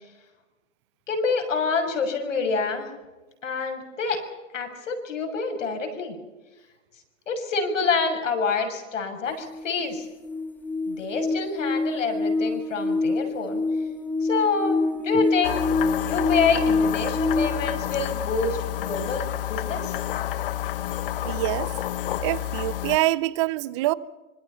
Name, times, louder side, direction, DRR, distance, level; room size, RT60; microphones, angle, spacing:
voice 1, 1.1-2.9 3.4-4.2 4.5-6.2 7.3-10.1 10.9-13.6 14.2-15.6 16.0-20.0, left 4 dB, 65° left, 6.6 m, -27 dB
sound 1, 9.4-17.5, left 3 dB, 5° left, 1.1 m, -26 dB
sound 2, 15.4-23.0, left 13 dB, 45° left, 0.9 m, -29 dB
voice 2, 21.2-21.7 22.2-23.9, right 18 dB, 20° right, 0.6 m, -25 dB
26.0 x 23.0 x 5.7 m
hypercardioid pair, 135°, 40 cm